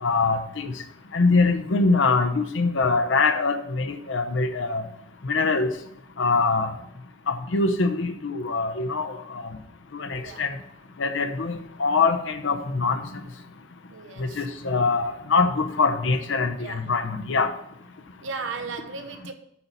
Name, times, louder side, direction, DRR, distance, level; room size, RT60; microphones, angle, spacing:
voice 1, 0.0-0.7 1.1-4.8 5.2-5.7 6.2-6.7 7.3-9.5 9.9-10.5 11.0-13.0 14.2-17.5, left 4 dB, 65° left, 0.7 m, -23 dB
voice 2, 10.2-10.5 13.9-14.5 16.5-16.9 18.2-19.3, right 4 dB, 75° right, 0.9 m, -36 dB
8.6 x 4.0 x 7.1 m
head